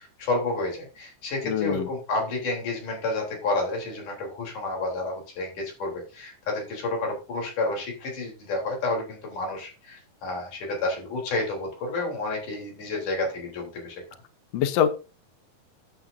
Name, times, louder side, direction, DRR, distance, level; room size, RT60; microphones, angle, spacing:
voice 1, 0.0-14.0, left 2 dB, 55° left, 0 dB, 5.0 m, -30 dB
voice 2, 1.4-1.9 14.5-14.9, left 9 dB, 85° left, 9 dB, 1.5 m, -24 dB
14.0 x 8.8 x 2.7 m, 0.32 s
omnidirectional pair, 4.5 m